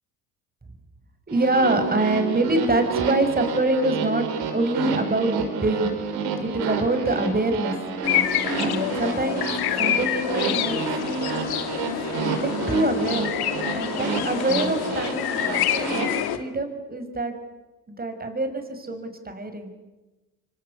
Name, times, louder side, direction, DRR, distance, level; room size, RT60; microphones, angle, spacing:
voice 1, 1.3-4.3 4.5-5.9 6.4-7.7 8.6-11.5 12.4-13.3 13.7-17.3 17.9-19.7, right 2 dB, 25° right, 7 dB, 6.2 m, -25 dB
sound 1, 1.3-16.1, right 4 dB, 80° right, 5.7 m, -29 dB
sound 2, 8.0-16.4, left 11 dB, 70° left, 2.4 m, -27 dB
25.5 x 25.0 x 8.5 m, 1.1 s
supercardioid pair, 70°, 39 cm